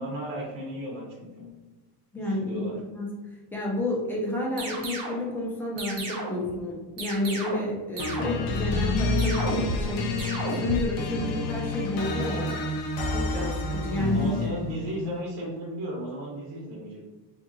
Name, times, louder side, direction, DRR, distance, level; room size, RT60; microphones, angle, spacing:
voice 1, 0.0-1.5 2.4-2.8 14.1-17.1, equal, 50° right, -5 dB, 0.8 m, -34 dB
voice 2, 2.1-3.1 3.5-12.6 13.0-14.3, left 1 dB, 5° left, -4 dB, 0.5 m, -30 dB
sound 1, 4.6-5.3 5.8-6.5 7.0-7.7 8.0-8.6 9.2-9.9 10.2-10.9, right 2 dB, 75° right, 1.0 m, -33 dB
sound 2, 8.0-14.7, left 3 dB, 60° left, 0.5 m, -29 dB
2.6 x 2.6 x 2.6 m, 1.2 s
cardioid pair, 140°, 43 cm